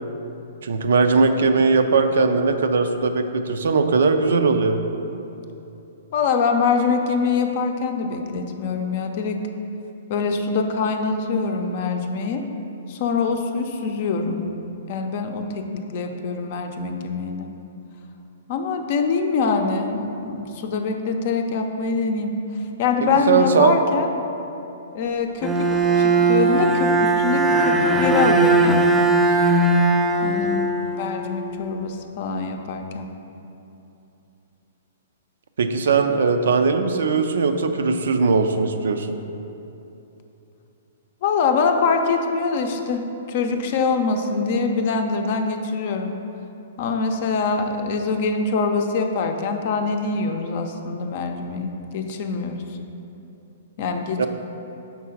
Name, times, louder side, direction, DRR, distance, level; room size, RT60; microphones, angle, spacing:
voice 1, 0.6-4.8 23.0-23.7 35.6-39.1 54.2-54.3, right 4 dB, 75° right, 7 dB, 0.4 m, -19 dB
voice 2, 6.1-9.4 10.1-12.4 12.9-14.5 14.9-17.5 18.5-22.3 22.8-24.1 24.9-25.7 25.9-29.0 30.2-30.7 31.0-33.1 41.2-46.1 46.8-52.6 53.8-54.3, left 4 dB, 50° left, 5 dB, 0.6 m, -24 dB
Bowed string instrument, 25.4-31.4, right 2 dB, 5° right, 0.5 m, -19 dB
5.9 x 3.7 x 5.7 m, 2.9 s
hypercardioid pair, 130°, 0 cm